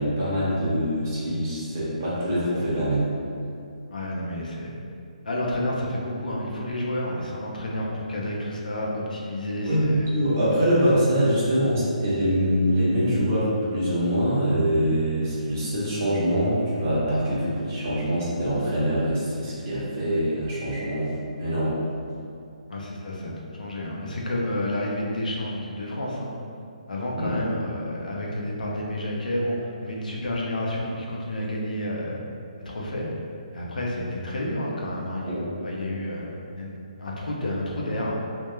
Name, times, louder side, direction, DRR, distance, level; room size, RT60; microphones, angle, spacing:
voice 1, 0.0-3.0 9.7-21.1 21.4-21.8 27.2-27.4 35.2-35.4, equal, 20° right, -9 dB, 0.5 m, -24 dB
voice 2, 3.9-4.7 5.2-10.1 22.7-26.3 26.9-32.2 32.7-33.1 33.5-38.1, left 1 dB, 85° left, -3 dB, 0.5 m, -30 dB
2.2 x 2.1 x 3.0 m, 2.4 s
hypercardioid pair, 175°, 4 cm